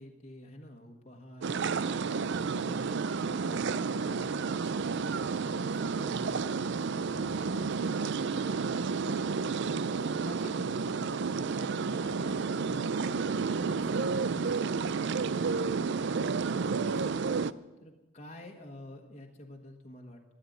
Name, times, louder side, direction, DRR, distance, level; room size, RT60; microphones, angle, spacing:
voice 1, 0.0-9.2 9.6-17.1 17.8-20.2, left 1 dB, 30° left, 0 dB, 1.4 m, -49 dB
sound 1, 1.4-17.5, right 5 dB, 55° right, 0.4 m, -31 dB
13.5 x 11.5 x 9.3 m, 1.2 s
head